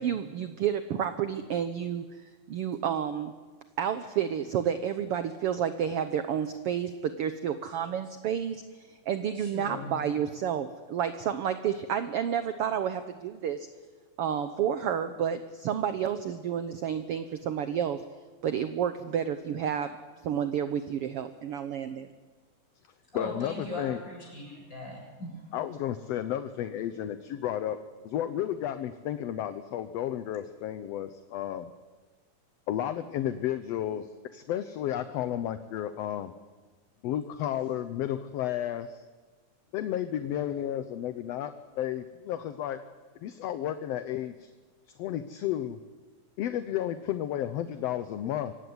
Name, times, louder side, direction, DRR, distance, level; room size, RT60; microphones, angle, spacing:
voice 1, 0.0-3.3 3.8-13.7 14.2-18.0 18.4-20.0 20.2-22.1, right 8 dB, 65° right, 10 dB, 1.5 m, -30 dB
voice 2, 9.3-9.9 23.1-25.4, left 1 dB, 25° left, -1 dB, 8.1 m, -39 dB
voice 3, 23.2-24.0 25.5-31.7 32.7-36.3 37.0-39.0 39.7-42.8 43.2-44.5 45.0-45.8 46.4-48.5, left 11 dB, 70° left, 11 dB, 1.7 m, -32 dB
25.5 x 16.5 x 9.6 m, 1.4 s
omnidirectional pair, 3.5 m